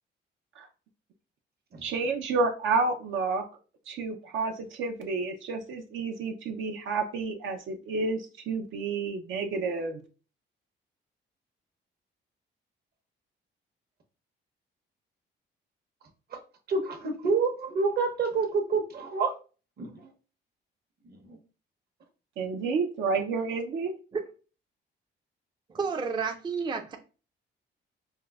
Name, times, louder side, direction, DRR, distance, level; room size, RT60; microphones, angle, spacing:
voice 1, 1.8-3.4 3.9-10.0 22.4-24.0, right 4 dB, 75° right, 3 dB, 0.5 m, -30 dB
voice 2, 16.7-19.3 19.8-20.0 21.3-21.4, right 4 dB, 50° right, 4 dB, 0.8 m, -28 dB
voice 3, 25.7-27.0, right 5 dB, 25° right, 5 dB, 0.4 m, -30 dB
4.5 x 2.0 x 2.3 m, 0.36 s
cardioid pair, 90°, 20 cm